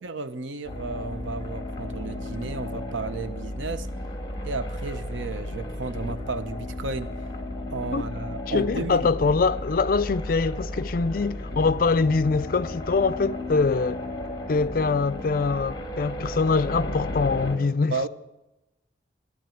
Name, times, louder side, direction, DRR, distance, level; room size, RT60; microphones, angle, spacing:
voice 1, 0.0-3.9 4.4-7.2 7.7-9.1 17.9-18.1, right 3 dB, 90° right, 0.9 m, -33 dB
sound 1, 0.6-17.6, left 1 dB, 25° left, 1.9 m, -34 dB
voice 2, 8.5-14.0 14.5-18.1, left 4 dB, 50° left, 0.4 m, -24 dB
13.5 x 11.5 x 9.1 m
head